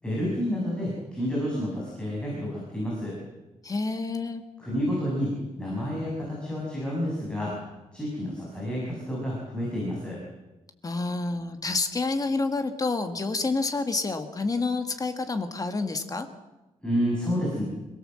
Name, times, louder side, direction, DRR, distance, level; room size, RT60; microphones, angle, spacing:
voice 1, 0.0-3.1 4.6-7.5 7.9-10.2 16.8-17.6, equal, 5° left, -5 dB, 6.7 m, -29 dB
voice 2, 3.6-4.4 10.8-16.3, left 3 dB, 30° left, 8 dB, 1.7 m, -28 dB
26.5 x 17.0 x 7.7 m, 1.0 s
wide cardioid pair, 165°, 13 cm